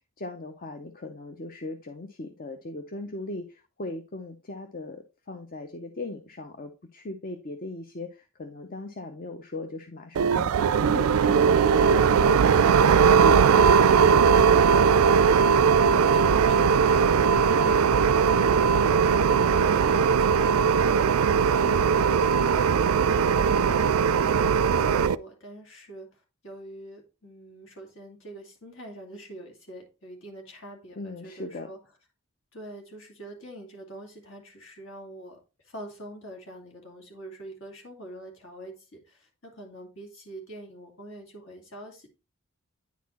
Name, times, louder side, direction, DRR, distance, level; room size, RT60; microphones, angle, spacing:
voice 1, 0.2-14.4 31.0-31.7, left 2 dB, 40° left, 6 dB, 0.6 m, -38 dB
sound 1, 10.1-25.1, right 6 dB, 75° right, 0.4 m, -20 dB
voice 2, 15.7-31.8 32.5-35.4 35.6-42.1, right 1 dB, 60° left, 1 dB, 2.5 m, -44 dB
9.4 x 4.2 x 4.1 m, 0.30 s
head